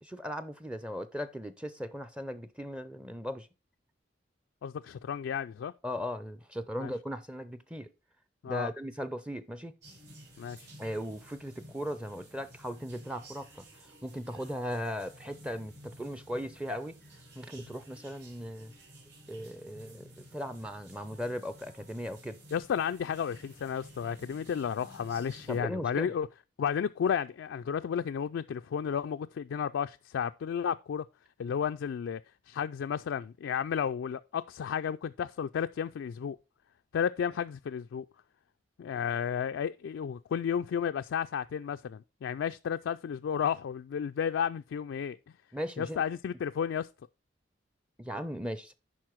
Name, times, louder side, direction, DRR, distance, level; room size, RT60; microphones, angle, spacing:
voice 1, 0.0-3.5 5.8-7.9 8.5-9.7 10.8-13.6 14.0-17.0 17.4-18.7 19.3-22.4 25.5-26.1 45.5-46.0 48.0-48.7, equal, 5° right, 0.5 m, -38 dB
voice 2, 4.6-5.7 6.8-6.9 8.4-8.7 10.4-10.7 22.5-26.3 26.6-31.0 31.4-32.2 32.5-36.4 36.9-38.1 38.8-45.2 45.8-46.9, left 7 dB, 80° left, 0.3 m, -32 dB
sound 1, 9.8-25.6, right 1 dB, 60° right, 4.4 m, -54 dB
11.0 x 4.2 x 4.5 m
head